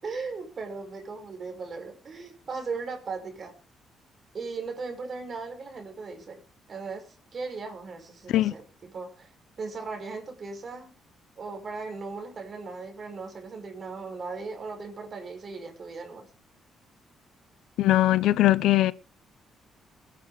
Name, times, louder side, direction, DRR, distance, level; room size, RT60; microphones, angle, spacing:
voice 1, 0.0-3.5 4.3-6.4 6.7-9.3 9.6-11.0 11.4-16.3, right 4 dB, 45° right, 5.5 m, -37 dB
voice 2, 17.8-18.9, left 15 dB, 85° left, 0.7 m, -21 dB
21.0 x 10.0 x 4.1 m
cardioid pair, 90°, 0 cm